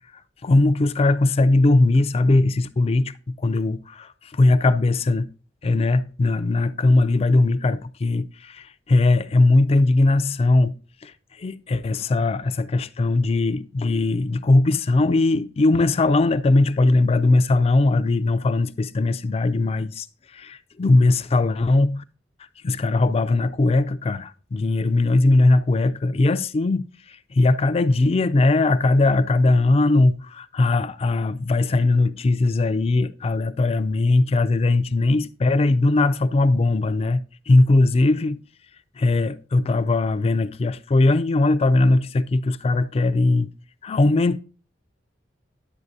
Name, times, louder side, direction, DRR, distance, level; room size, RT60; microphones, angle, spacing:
voice 1, 0.4-5.3 5.6-10.7 11.0-11.1 11.4-20.1 20.3-22.0 22.6-26.9 27.3-37.2 37.5-38.4 39.0-43.5 43.8-44.4, left 2 dB, 30° left, 0.3 m, -19 dB
11.0 x 8.0 x 2.6 m
head